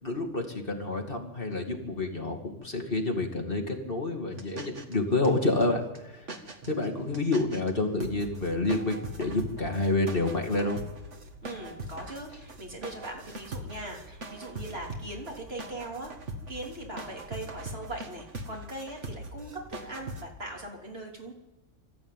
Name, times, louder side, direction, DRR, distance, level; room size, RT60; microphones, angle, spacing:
voice 1, 0.0-6.3 6.7-10.8, left 2 dB, 45° left, 2 dB, 2.8 m, -29 dB
sound 1, 4.3-4.9 5.2-5.6 6.0-6.1 6.3-7.7 8.0-20.3, right 1 dB, 70° right, 2.1 m, -41 dB
voice 2, 11.4-16.1 16.5-21.3, right 2 dB, 55° right, 0 dB, 3.6 m, -40 dB
24.0 x 14.0 x 9.2 m, 1.0 s
omnidirectional pair, 1.3 m